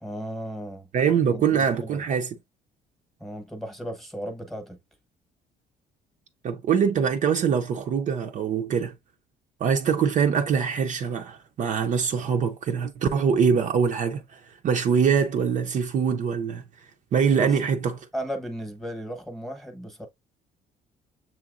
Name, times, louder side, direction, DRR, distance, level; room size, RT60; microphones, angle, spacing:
voice 1, 0.0-0.9 1.3-2.0 3.2-4.8 17.4-17.6 18.1-20.1, equal, ahead, 0.9 m, -35 dB
voice 2, 0.9-2.3 6.4-8.9 9.6-16.6 17.1-18.1, right 6 dB, 45° right, 0.5 m, -23 dB
6.8 x 2.9 x 2.4 m
cardioid pair, 110°, 17 cm